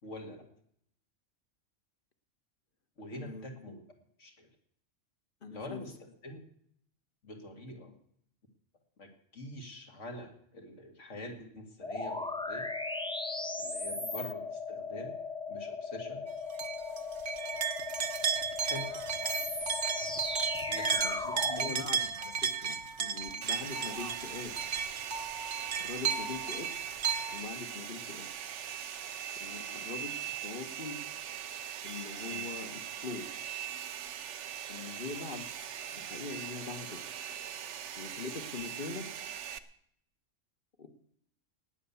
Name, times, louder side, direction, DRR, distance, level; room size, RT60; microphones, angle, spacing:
voice 1, 0.0-0.4 3.0-3.8 4.2-4.5 5.5-6.4 7.2-7.9 9.0-12.7 13.6-15.1 15.5-16.3 18.6-18.9 20.7-21.8 32.3-32.4, left 1 dB, 75° left, 4 dB, 2.5 m, -45 dB
voice 2, 3.1-3.5 5.4-5.9 7.7-7.8 13.9-14.2 21.0-24.5 25.8-26.7 27.3-28.3 29.4-31.0 31.8-33.3 34.7-35.5 35.8-37.0 38.0-39.1 40.8-40.9, left 4 dB, 45° left, 7 dB, 1.5 m, -42 dB
sound 1, 11.8-21.7, left 3 dB, 5° left, 0.7 m, -37 dB
sound 2, 16.6-27.4, right 6 dB, 50° right, 1.0 m, -34 dB
Domestic sounds home sounds, 23.4-39.6, right 9 dB, 70° right, 1.1 m, -41 dB
18.5 x 8.4 x 7.0 m, 0.70 s
omnidirectional pair, 1.3 m